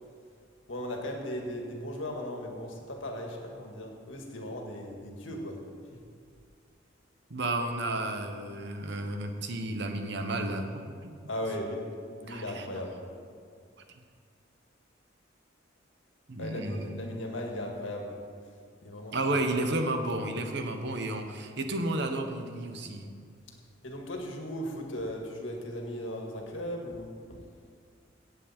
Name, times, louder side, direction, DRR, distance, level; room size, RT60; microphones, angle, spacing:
voice 1, 0.7-5.6 5.9-6.0 11.3-11.9 12.2-13.0 16.4-18.2 18.8-19.6 23.8-27.4, left 1 dB, 80° left, 1 dB, 1.9 m, -37 dB
voice 2, 7.3-11.2 12.3-12.8 16.3-16.9 19.1-23.1, right 2 dB, 60° right, 6 dB, 1.0 m, -32 dB
16.5 x 8.1 x 4.4 m, 2.2 s
head